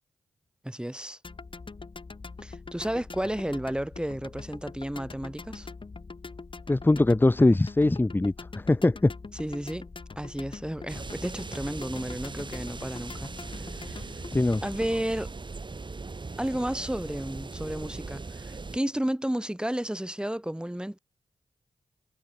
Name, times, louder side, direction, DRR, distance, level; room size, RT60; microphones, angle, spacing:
voice 1, 0.7-1.2 2.4-5.7 9.3-9.9 10.2-14.1 14.6-15.3 16.4-21.0, right 1 dB, 5° right, 3.6 m, -32 dB
sound 1, 1.2-15.0, left 4 dB, 45° left, 5.2 m, -43 dB
voice 2, 6.7-9.1 14.3-14.6, left 2 dB, 20° left, 0.8 m, -22 dB
sound 2, 10.9-18.8, right 3 dB, 45° right, 3.4 m, -39 dB
cardioid pair, 50°, 12 cm